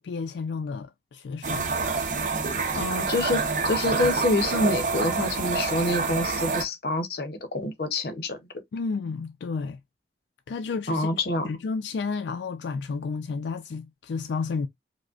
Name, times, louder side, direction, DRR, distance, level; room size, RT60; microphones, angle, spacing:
voice 1, 0.0-1.7 8.7-9.8 10.5-11.1 11.4-14.7, left 4 dB, 80° left, 0.4 m, -31 dB
sound 1, 1.4-6.6, right 4 dB, 45° right, 0.7 m, -27 dB
voice 2, 2.7-8.4 10.9-11.6, left 2 dB, 60° left, 0.7 m, -27 dB
4.9 x 2.1 x 2.4 m
head